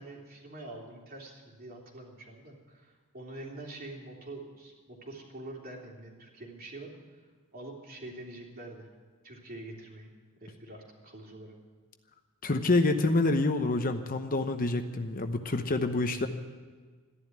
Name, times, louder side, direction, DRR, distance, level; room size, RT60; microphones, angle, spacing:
voice 1, 0.0-6.9 7.5-8.9 9.2-10.1 10.4-11.5, right 2 dB, 40° right, -1 dB, 3.2 m, -45 dB
voice 2, 12.4-16.3, left 2 dB, 40° left, 7 dB, 0.9 m, -27 dB
14.0 x 11.0 x 9.4 m, 1.5 s
head